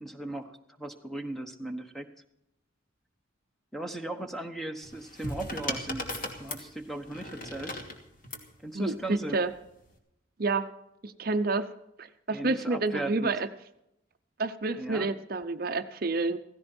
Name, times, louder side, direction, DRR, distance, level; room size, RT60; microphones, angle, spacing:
voice 1, 0.0-2.1 3.7-6.1 6.4-7.8 8.6-9.4 12.3-13.3 14.7-15.1, right 1 dB, ahead, 6 dB, 1.1 m, -37 dB
sound 1, 4.8-8.5 9.6-9.9, left 1 dB, 45° left, 2.4 m, -37 dB
voice 2, 8.7-9.5 10.4-10.7 11.0-11.7 12.0-13.5 14.4-16.4, right 3 dB, 50° right, 9 dB, 0.7 m, -29 dB
16.0 x 16.0 x 4.4 m, 0.82 s
head